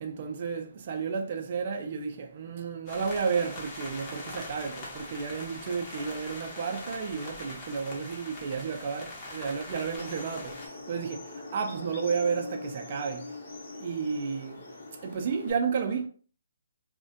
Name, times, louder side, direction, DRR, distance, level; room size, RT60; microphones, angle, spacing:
voice 1, 0.0-10.5 10.9-11.2 11.5-13.2 13.7-14.6 15.0-16.1, right 5 dB, 40° right, 0.3 m, -32 dB
sound 1, 2.9-10.7, left 2 dB, 20° left, 0.6 m, -42 dB
sound 2, 10.0-15.5, left 2 dB, 60° left, 0.8 m, -42 dB
2.4 x 2.1 x 2.5 m
hypercardioid pair, 160°, 0 cm